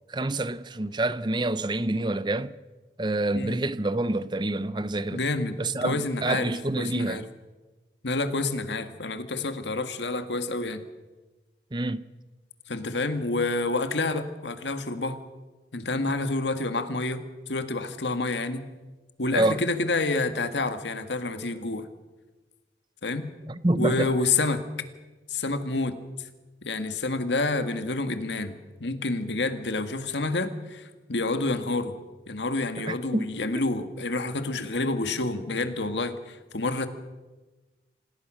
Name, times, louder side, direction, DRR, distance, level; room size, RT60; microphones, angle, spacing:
voice 1, 0.1-2.5 3.0-5.2 5.6-7.3 11.7-12.0 19.3-19.6 23.5-24.1 32.9-33.5, right 2 dB, 25° right, 0.7 m, -27 dB
voice 2, 5.1-6.5 6.8-7.2 8.0-10.8 12.7-15.2 15.7-17.2 17.5-18.6 19.2-21.9 23.0-23.3 23.8-24.6 25.3-26.0 26.6-32.0 32.3-36.9, left 3 dB, 85° left, 1.9 m, -28 dB
27.0 x 18.5 x 6.3 m
head